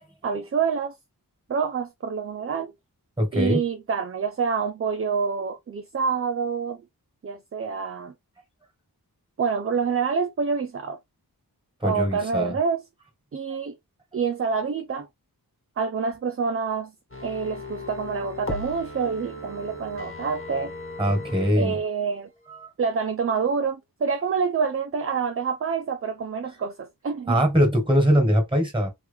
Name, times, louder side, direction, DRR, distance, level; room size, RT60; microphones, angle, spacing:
voice 1, 0.2-0.9 1.5-2.7 3.3-6.8 7.2-8.1 9.4-11.0 11.8-12.8 13.3-13.8 14.1-15.1 15.8-16.9 17.2-20.7 21.6-22.3 22.8-27.4, right 5 dB, 40° right, 0.4 m, -27 dB
voice 2, 3.2-3.6 11.8-12.5 21.0-21.8 22.5-22.7 27.3-28.9, equal, 15° right, 1.7 m, -22 dB
sound 1, 17.1-21.5 21.9-22.0, left 2 dB, 35° left, 1.2 m, -37 dB
3.1 x 3.0 x 3.4 m
wide cardioid pair, 80°, 38 cm